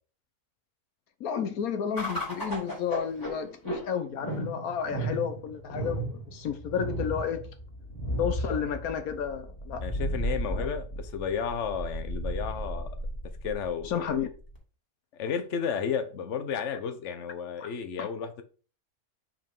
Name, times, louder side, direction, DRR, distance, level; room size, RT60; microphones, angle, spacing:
voice 1, 1.2-7.4 8.2-9.8 10.5-10.7 13.8-14.3 17.6-17.7 18.0-18.1, left 7 dB, 75° left, 1.2 m, -32 dB
sound 1, 2.0-14.6, right 1 dB, 15° left, 2.3 m, -34 dB
voice 2, 9.8-12.9 13.4-14.1 15.1-18.4, left 7 dB, 55° left, 1.2 m, -32 dB
5.4 x 4.5 x 5.3 m
omnidirectional pair, 1.6 m